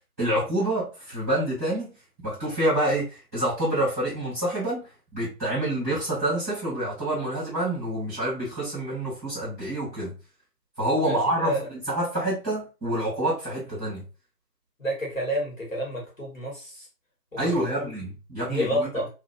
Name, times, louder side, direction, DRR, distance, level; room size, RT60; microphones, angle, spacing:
voice 1, 0.2-4.8 5.1-10.1 10.8-11.5 11.9-14.0 17.4-18.9, right 1 dB, 10° right, -14 dB, 1.3 m, -27 dB
voice 2, 11.0-11.7 14.8-16.8 17.5-17.9 18.4-19.1, equal, 50° left, -2 dB, 1.2 m, -29 dB
2.8 x 2.3 x 2.3 m, 0.31 s
figure-of-eight pair, 160°, 50 cm